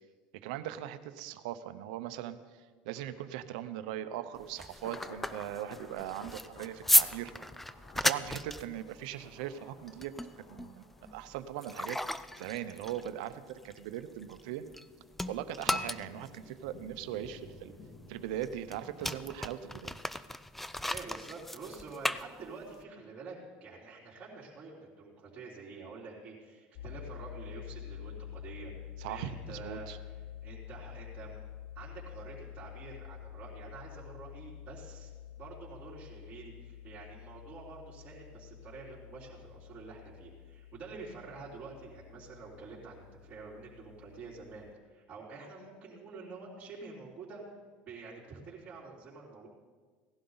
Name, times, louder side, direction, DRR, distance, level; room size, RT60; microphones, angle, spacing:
voice 1, 0.4-2.4 2.8-7.3 8.0-10.1 10.5-12.0 12.4-14.6 15.3-17.7 18.1-20.0 29.0-30.0, right 11 dB, 80° right, 11 dB, 0.8 m, -40 dB
Thunder, 2.9-20.0 20.4-20.5, left 2 dB, 40° left, 1.9 m, -55 dB
sound 1, 4.4-14.9 15.1-22.8, left 1 dB, 5° left, 0.4 m, -35 dB
voice 2, 20.8-31.5 31.8-35.1 35.4-47.4 47.9-49.5, right 4 dB, 30° right, -8 dB, 3.5 m, -48 dB
sound 2, 26.8-44.7, left 10 dB, 60° left, 0.6 m, -48 dB
17.0 x 11.5 x 4.0 m, 1.5 s
supercardioid pair, 120°, 4 cm